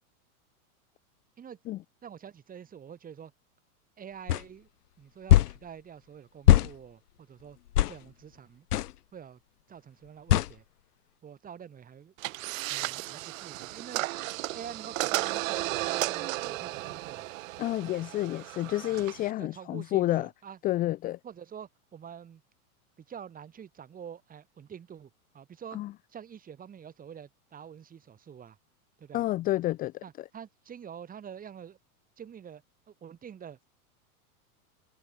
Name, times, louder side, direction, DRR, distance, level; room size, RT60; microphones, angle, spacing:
voice 1, 2.0-3.3 4.0-4.7 5.0-7.6 7.9-8.7 9.1-9.4 9.7-10.6 11.2-12.1 12.7-14.0 14.5-17.4 18.8-19.0 19.4-20.6 21.2-22.4 23.0-25.8 26.1-28.6 29.0-29.2 30.0-31.8 32.2-33.6, right 8 dB, 20° right, 4.1 m, -46 dB
sound 1, 4.3-4.4 5.3-5.6 6.5-6.7 7.7-8.0 8.7-8.9 10.3-10.5, left 13 dB, 90° left, 1.2 m, -20 dB
sound 2, 12.2-19.3, right 18 dB, 60° right, 1.4 m, -34 dB
voice 2, 17.6-20.3 20.6-21.2 25.7-25.9 29.1-30.0, left 15 dB, 20° left, 0.6 m, -29 dB
supercardioid pair, 145°, 45 cm